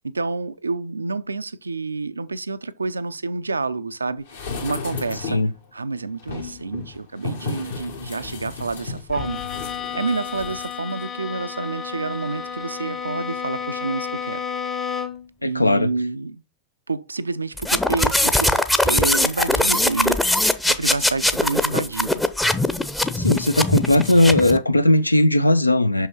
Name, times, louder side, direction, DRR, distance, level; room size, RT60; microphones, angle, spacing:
voice 1, 0.0-4.2 4.6-5.4 5.7-9.4 9.9-14.4 15.4-16.4 16.9-22.2, right 3 dB, 80° right, 0.4 m, -28 dB
sound 1, 4.3-5.5 6.2-10.7 11.0-11.1, left 4 dB, 65° left, 1.8 m, -33 dB
Bowed string instrument, 9.1-15.3, left 7 dB, 30° left, 1.0 m, -31 dB
voice 2, 15.4-15.9 23.1-26.1, left 1 dB, 85° left, 0.4 m, -18 dB
sound 2, 17.6-24.6, left 1 dB, 5° left, 0.6 m, -21 dB
6.0 x 5.5 x 4.3 m
figure-of-eight pair, 90°, 0 cm